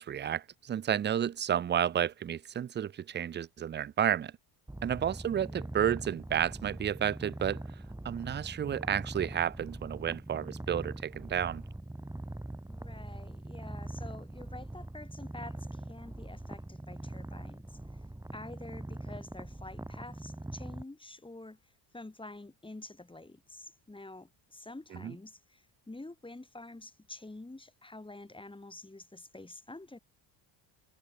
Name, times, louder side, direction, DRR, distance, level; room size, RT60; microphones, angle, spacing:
voice 1, 0.0-4.3 4.8-7.6 8.0-11.6 25.0-25.1, right 9 dB, 25° right, 0.5 m, -31 dB
Purr, 4.7-20.8, right 1 dB, 5° right, 5.4 m, -42 dB
voice 2, 5.1-5.8 12.7-17.8 18.3-21.6 21.9-30.0, left 2 dB, 10° left, 4.9 m, -48 dB
cardioid pair, 110°, 49 cm